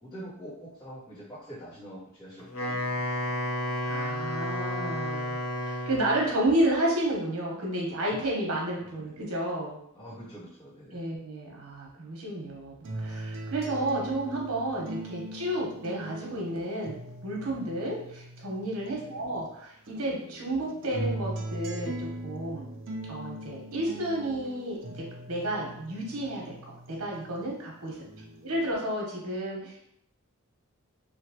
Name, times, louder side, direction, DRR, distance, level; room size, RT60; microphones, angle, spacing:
voice 1, 0.0-3.4 8.1-8.2 8.8-9.2 9.9-11.1 18.9-19.2 28.0-28.5, equal, 15° left, -14 dB, 1.0 m, -46 dB
Wind instrument woodwind instrument, 2.4-6.3, left 1 dB, 70° left, 0.7 m, -31 dB
voice 2, 3.8-5.4 5.7-9.8 10.9-17.0 17.2-22.7 23.1-27.9 28.4-29.7, right 1 dB, 85° right, -2 dB, 0.9 m, -31 dB
sound 1, 12.8-19.5 19.9-27.5 27.9-28.8, right 1 dB, 60° right, 0.5 m, -40 dB
3.0 x 2.4 x 2.8 m, 0.71 s
head